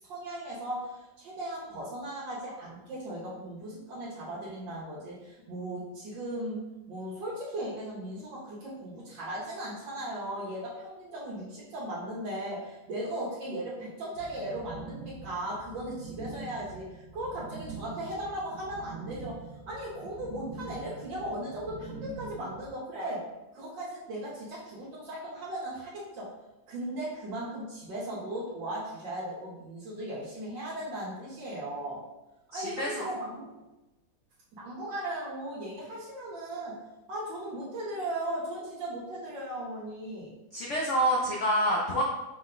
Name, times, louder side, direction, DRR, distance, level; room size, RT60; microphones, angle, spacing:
voice 1, 0.0-6.6 6.9-23.3 23.5-26.3 26.7-32.0 32.5-33.5 34.5-36.8 37.1-40.3, right 1 dB, 80° right, -7 dB, 1.7 m, -37 dB
sound 1, 14.1-22.7, right 3 dB, 50° right, 0.9 m, -44 dB
voice 2, 32.5-33.1 40.5-42.0, equal, 80° left, -3 dB, 0.6 m, -27 dB
5.0 x 2.2 x 3.8 m, 1.0 s
omnidirectional pair, 2.0 m